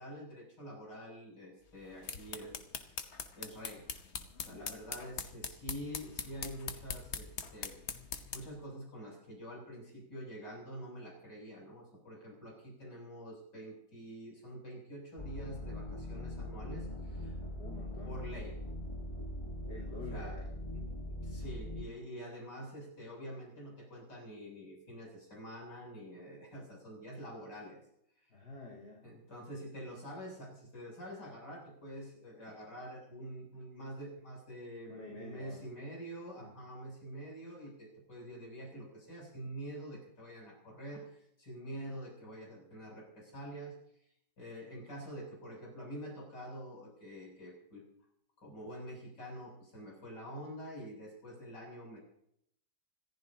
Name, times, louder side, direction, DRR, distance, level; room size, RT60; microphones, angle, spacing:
voice 1, 0.0-3.9 4.4-7.8 8.3-17.3 18.0-18.6 19.9-20.4 20.7-27.8 29.0-43.7 44.4-47.8 48.4-52.0, equal, 60° left, -2 dB, 8.5 m, -46 dB
sound 1, 1.8-8.6, left 5 dB, 40° left, 1.2 m, -43 dB
sound 2, 15.2-21.9, left 1 dB, 20° left, 1.3 m, -41 dB
voice 2, 17.6-18.2 19.7-20.5 28.3-29.0 34.9-35.7 36.4-36.5, left 2 dB, 85° left, -4 dB, 4.7 m, -48 dB
26.0 x 14.5 x 2.9 m, 0.72 s
omnidirectional pair, 2.0 m